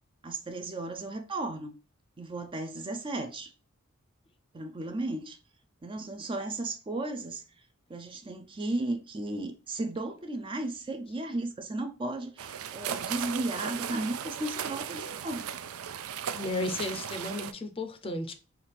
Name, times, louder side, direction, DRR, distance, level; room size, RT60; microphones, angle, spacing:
voice 1, 0.2-1.8 2.2-3.5 4.5-5.4 5.8-7.4 7.9-15.5, right 2 dB, 25° right, 0.4 m, -35 dB
sound 1, 12.4-17.5, right 8 dB, 85° right, 0.4 m, -36 dB
voice 2, 16.3-18.3, left 2 dB, 25° left, 0.5 m, -34 dB
5.7 x 2.4 x 3.3 m
head